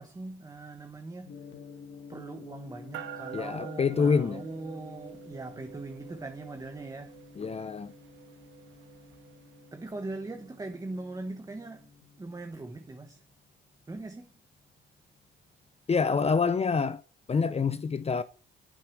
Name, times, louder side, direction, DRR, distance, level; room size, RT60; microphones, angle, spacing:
voice 1, 0.0-1.4 2.1-7.2 9.7-11.9 12.2-13.2 13.9-14.3, right 2 dB, 15° right, 1.3 m, -40 dB
Gong, 1.3-15.4, left 5 dB, 70° left, 2.4 m, -52 dB
sound 1, 2.9-10.6, right 9 dB, 75° right, 1.8 m, -48 dB
voice 2, 3.3-4.5 7.4-7.9 15.9-17.0 17.3-18.2, left 5 dB, 30° left, 0.7 m, -26 dB
9.2 x 8.0 x 6.2 m
cardioid pair, 90°, 20 cm